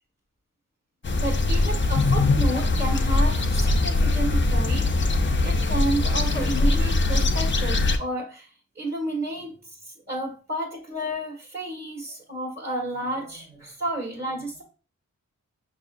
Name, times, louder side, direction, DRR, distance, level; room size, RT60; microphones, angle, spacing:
sound 1, 1.0-8.0, left 2 dB, 40° left, 0.5 m, -22 dB
voice 1, 1.2-8.5 8.7-9.5 9.8-14.6, right 1 dB, 30° right, -2 dB, 1.3 m, -31 dB
6.1 x 2.7 x 2.5 m, 0.36 s
wide cardioid pair, 60°, 31 cm